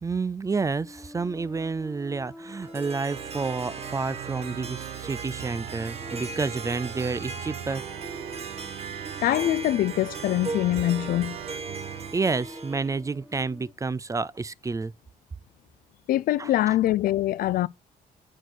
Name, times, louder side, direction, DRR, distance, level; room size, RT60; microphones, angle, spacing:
voice 1, 0.0-7.8 12.1-14.9 16.4-16.8, right 4 dB, 20° right, 0.4 m, -30 dB
sound 1, 0.8-13.7, left 1 dB, 5° left, 1.3 m, -48 dB
Harp, 2.5-13.0, right 4 dB, 40° right, 1.5 m, -39 dB
Organ, 3.1-12.2, right 12 dB, 80° right, 0.8 m, -40 dB
voice 2, 9.2-11.4 16.1-17.7, left 14 dB, 70° left, 0.4 m, -24 dB
9.1 x 4.6 x 6.1 m
cardioid pair, 90°, 15 cm